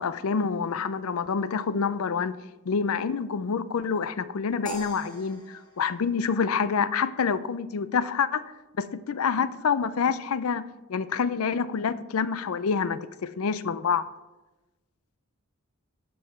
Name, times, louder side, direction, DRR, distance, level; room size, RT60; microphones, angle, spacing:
voice 1, 0.0-2.4 2.7-8.4 8.8-10.6 10.9-13.0 13.4-14.0, left 6 dB, 75° left, 15 dB, 0.5 m, -27 dB
sound 1, 4.7-7.0, equal, 20° left, 1.9 m, -43 dB
12.0 x 5.4 x 4.3 m, 1.1 s
head